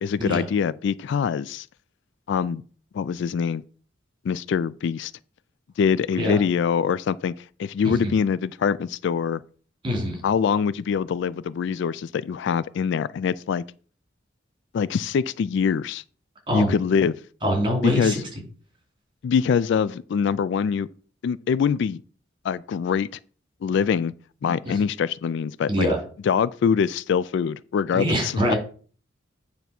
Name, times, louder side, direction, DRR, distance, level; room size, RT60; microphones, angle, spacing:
voice 1, 0.0-1.7 2.3-2.6 2.9-3.6 4.2-5.1 5.8-7.3 7.6-9.4 10.2-13.6 14.7-16.0 16.5-17.2 17.8-18.2 19.2-20.9 21.2-22.0 22.4-23.1 23.6-24.1 24.4-25.9 26.2-28.5, left 6 dB, 65° left, 0.3 m, -24 dB
voice 2, 7.8-8.1 9.8-10.2 16.5-16.8 17.4-18.2 24.7-24.8 25.7-26.0 27.9-28.6, equal, 25° right, 2.8 m, -24 dB
9.3 x 3.4 x 5.9 m
head